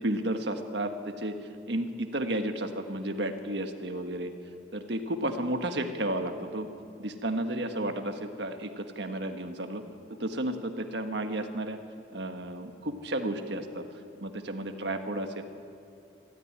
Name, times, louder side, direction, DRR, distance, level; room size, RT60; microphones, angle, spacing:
voice 1, 0.0-1.3 1.7-4.3 4.7-6.7 7.0-9.8 10.2-11.8 12.1-13.8 14.2-15.4, right 1 dB, 60° right, 6 dB, 1.5 m, -32 dB
24.5 x 13.5 x 9.8 m, 2.5 s
head